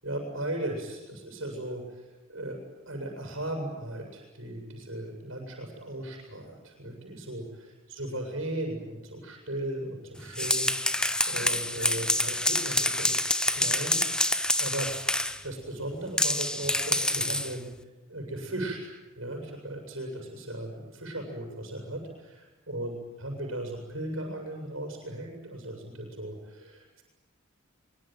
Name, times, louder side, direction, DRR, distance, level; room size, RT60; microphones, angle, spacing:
voice 1, 0.0-2.6 2.9-13.1 13.4-17.7 18.1-27.0, right 1 dB, 65° right, 0 dB, 7.2 m, -37 dB
sound 1, 10.2-15.4 16.2-17.6, left 1 dB, 5° left, 0.9 m, -27 dB
24.0 x 23.0 x 9.3 m, 1.1 s
head